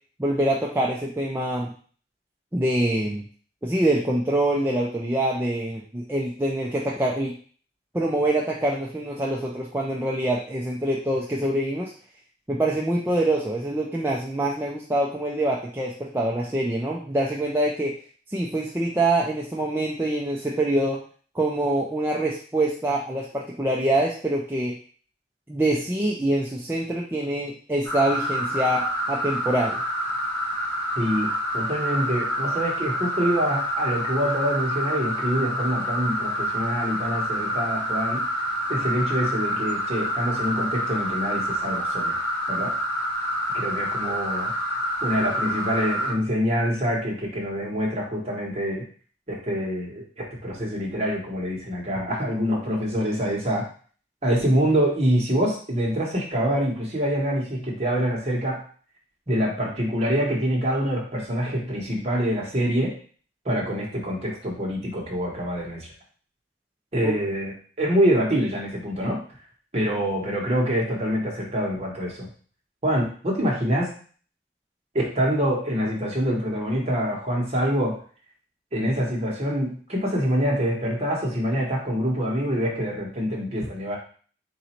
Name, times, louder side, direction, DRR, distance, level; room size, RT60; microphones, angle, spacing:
voice 1, 0.2-1.7 2.5-3.2 3.6-7.3 7.9-11.9 12.5-17.9 18.3-21.0 21.3-24.7 25.5-29.8 67.0-67.1, right 1 dB, 10° right, -4 dB, 0.5 m, -25 dB
sound 1, 27.8-46.1, equal, 20° left, 1.0 m, -27 dB
voice 2, 31.0-38.3 38.7-42.2 42.5-42.7 43.5-44.5 45.0-48.8 49.3-53.7 54.2-58.6 59.3-63.0 63.4-65.9 66.9-69.2 69.7-72.3 72.8-73.9 74.9-78.0 78.7-84.0, equal, 35° right, -2 dB, 1.2 m, -25 dB
4.0 x 2.7 x 4.4 m, 0.43 s
head